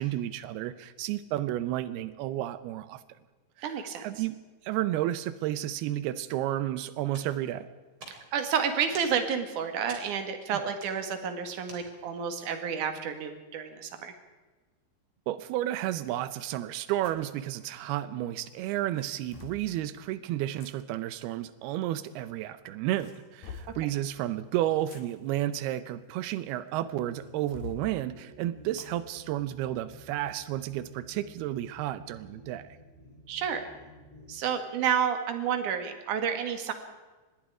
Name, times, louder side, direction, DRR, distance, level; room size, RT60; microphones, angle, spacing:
voice 1, 0.0-3.0 3.7-7.7 15.3-32.8, right 13 dB, 90° right, 13 dB, 2.8 m, -32 dB
voice 2, 3.6-4.1 8.1-14.1 23.8-23.9 33.3-33.7 34.3-36.7, right 7 dB, 60° right, 7 dB, 3.2 m, -30 dB
sound 1, 7.1-12.3, right 2 dB, 35° right, 4.4 m, -51 dB
sound 2, 17.0-17.3 18.4-19.7 20.6-20.7 21.9-22.5 22.9-23.8 24.6-26.7 27.1-27.8 28.8-29.0 29.4-29.5 30.1-30.3, left 5 dB, 75° left, 4.3 m, -46 dB
sound 3, 26.8-34.3, left 1 dB, 45° left, 9.4 m, -53 dB
25.5 x 20.5 x 4.9 m, 1.3 s
omnidirectional pair, 4.4 m